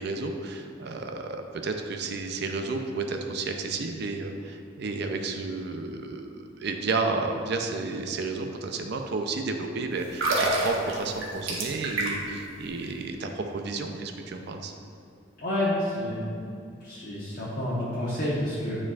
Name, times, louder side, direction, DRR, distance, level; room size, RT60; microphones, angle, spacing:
voice 1, 0.0-14.7, right 3 dB, 55° right, 4 dB, 0.4 m, -32 dB
sound 1, 10.0-12.4 12.7-12.9, right 2 dB, 85° right, 1.0 m, -27 dB
voice 2, 15.4-16.4 16.8-18.8, left 1 dB, 50° left, -9 dB, 1.0 m, -29 dB
9.7 x 4.4 x 2.4 m, 2.5 s
head